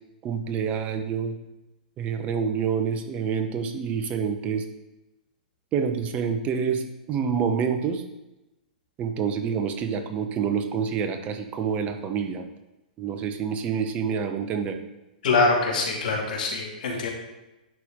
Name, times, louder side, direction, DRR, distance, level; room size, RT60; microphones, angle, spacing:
voice 1, 0.2-1.4 2.0-4.7 5.7-8.0 9.0-12.4 13.0-14.8, right 6 dB, 30° right, 7 dB, 1.0 m, -27 dB
voice 2, 15.2-17.1, left 3 dB, 65° left, 0 dB, 2.3 m, -24 dB
10.5 x 4.6 x 3.7 m, 0.99 s
hypercardioid pair, 120°, 5 cm